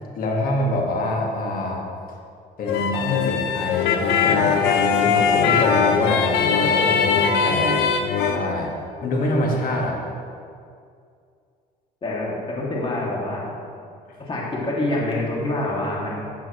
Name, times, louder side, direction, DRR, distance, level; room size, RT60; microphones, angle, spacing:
voice 1, 0.2-1.8 2.6-7.8 8.2-8.7 9.0-10.0, left 2 dB, 55° left, -1 dB, 1.9 m, -25 dB
sound 1, 2.7-8.4, left 6 dB, 90° left, 0.8 m, -20 dB
voice 2, 12.0-13.5 14.2-16.3, left 1 dB, 30° left, -5 dB, 2.6 m, -26 dB
13.0 x 7.5 x 3.2 m, 2.3 s
cardioid pair, 110°, 17 cm